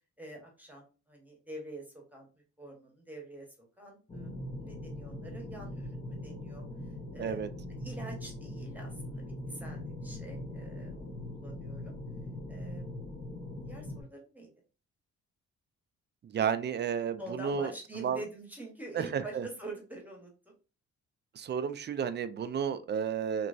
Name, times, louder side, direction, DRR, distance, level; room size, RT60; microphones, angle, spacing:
voice 1, 0.2-3.5 3.8-6.6 7.1-7.4 7.7-11.9 12.5-13.1 13.7-14.5 17.2-20.5, right 2 dB, 5° right, 0 dB, 1.2 m, -46 dB
sound 1, 4.1-14.0, left 1 dB, 20° left, 0.7 m, -41 dB
voice 2, 7.2-7.5 16.2-17.7 18.0-18.2 18.9-19.5 21.3-23.5, right 7 dB, 35° right, 12 dB, 0.4 m, -32 dB
3.0 x 2.9 x 2.6 m, 0.35 s
cardioid pair, 90°, 30 cm